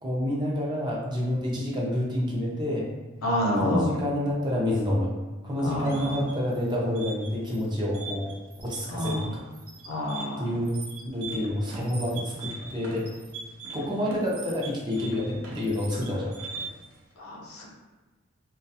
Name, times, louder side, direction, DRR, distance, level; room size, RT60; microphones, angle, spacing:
voice 1, 0.0-2.9 3.6-5.1 5.4-8.3 8.6-9.4 10.4-13.1 13.7-16.3, left 1 dB, 20° right, -4 dB, 0.5 m, -28 dB
voice 2, 3.2-3.8 5.6-6.3 8.9-9.3 9.9-10.6 17.2-17.7, left 1 dB, 75° left, -2 dB, 0.6 m, -28 dB
sound 1, 5.6-16.9, right 3 dB, 70° right, 0.5 m, -41 dB
2.3 x 2.2 x 2.7 m, 1.2 s
head